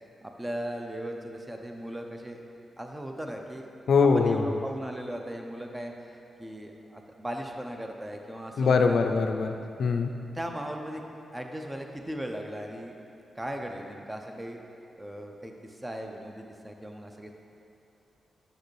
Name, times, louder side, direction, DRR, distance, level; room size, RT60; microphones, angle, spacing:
voice 1, 0.2-2.4 2.8-3.7 4.0-5.9 6.4-9.1 10.3-11.0 11.3-12.9 13.4-14.6 15.0-17.3, equal, 15° right, 3 dB, 0.6 m, -38 dB
voice 2, 3.9-4.4 8.6-9.5 9.8-10.1, left 5 dB, 75° left, 6 dB, 0.3 m, -22 dB
6.4 x 5.1 x 3.2 m, 2.6 s
cardioid pair, 55°, 0 cm